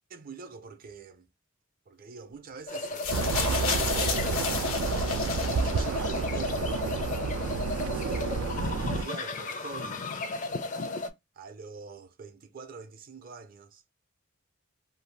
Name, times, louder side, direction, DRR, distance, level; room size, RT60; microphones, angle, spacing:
voice 1, 0.1-1.3 1.9-3.2 5.1-6.7 7.9-10.0 11.3-13.8, right 5 dB, 45° right, 0.6 m, -45 dB
sound 1, 2.7-11.1, left 4 dB, 35° left, 0.4 m, -34 dB
sound 2, 3.0-6.2 7.1-7.2, left 6 dB, 85° left, 0.8 m, -33 dB
sound 3, 3.1-9.0, right 5 dB, 90° right, 0.4 m, -30 dB
2.6 x 2.3 x 3.2 m
head